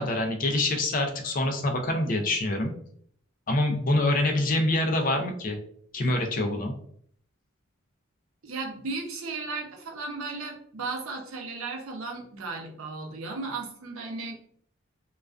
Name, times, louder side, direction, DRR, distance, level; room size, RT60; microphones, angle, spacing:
voice 1, 0.0-2.7 3.5-5.6 5.9-6.7, left 2 dB, 40° left, 3 dB, 0.4 m, -25 dB
voice 2, 8.4-14.3, right 3 dB, 85° right, 2 dB, 0.6 m, -35 dB
2.3 x 2.2 x 2.3 m, 0.62 s
head